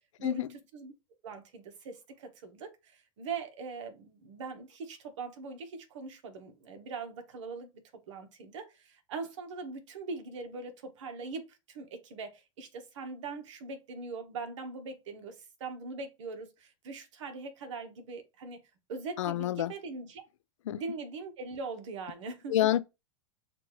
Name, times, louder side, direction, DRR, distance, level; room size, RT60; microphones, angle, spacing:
voice 1, 1.2-7.7 8.1-18.6 18.9-20.2 20.7-22.6, right 4 dB, 80° right, 1.2 m, -41 dB
voice 2, 19.2-19.7 20.7-20.8 22.5-22.8, left 12 dB, 85° left, 0.5 m, -27 dB
6.6 x 2.6 x 3.1 m
hypercardioid pair, 125°, 16 cm